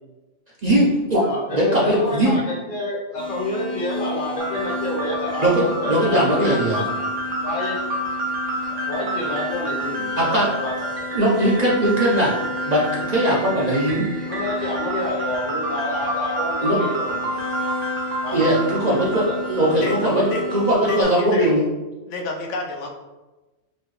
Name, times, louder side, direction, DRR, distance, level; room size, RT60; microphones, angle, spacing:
voice 1, 0.6-2.4 5.4-6.8 10.2-10.5 11.1-12.3 12.7-14.0 16.6-16.8 18.3-20.2 20.7-21.6, right 1 dB, 45° right, -5 dB, 0.6 m, -19 dB
voice 2, 1.2-6.3 6.7-6.8 7.4-7.8 8.7-10.9 14.3-17.4 18.2-19.4, left 1 dB, 45° left, -3 dB, 0.9 m, -28 dB
sound 1, 3.1-20.7, left 2 dB, 20° left, 0.7 m, -33 dB
sound 2, 4.4-21.0, right 1 dB, 80° right, 1.0 m, -29 dB
voice 3, 19.8-20.5 20.9-21.5 22.1-22.9, left 3 dB, 75° left, 1 dB, 0.9 m, -28 dB
4.2 x 2.3 x 3.1 m, 1.1 s
omnidirectional pair, 1.3 m